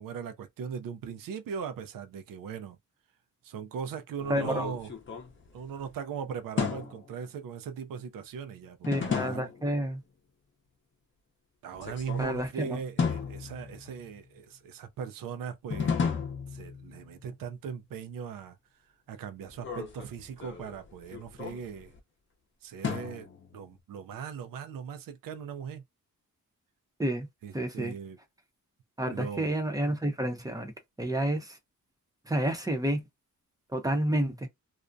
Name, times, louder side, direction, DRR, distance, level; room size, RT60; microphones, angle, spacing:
voice 1, 0.0-2.8 3.4-4.9 5.5-9.5 11.6-16.0 16.5-18.6 19.1-21.9 22.6-25.8 27.4-28.2 29.1-29.5, right 7 dB, 75° right, 0.5 m, -39 dB
sound 1, 4.2-5.9 6.6-7.2 8.8-9.7 11.7-12.5 13.0-14.1 15.7-17.1 19.5-22.0 22.8-23.8, left 6 dB, 35° left, 0.7 m, -34 dB
voice 2, 4.3-4.7 8.9-10.0 12.2-12.8 27.0-27.3 27.5-27.9 29.0-30.7 31.0-31.6 32.3-33.0 33.7-34.5, right 1 dB, 10° right, 0.6 m, -29 dB
2.4 x 2.1 x 2.5 m
wide cardioid pair, 120°, 33 cm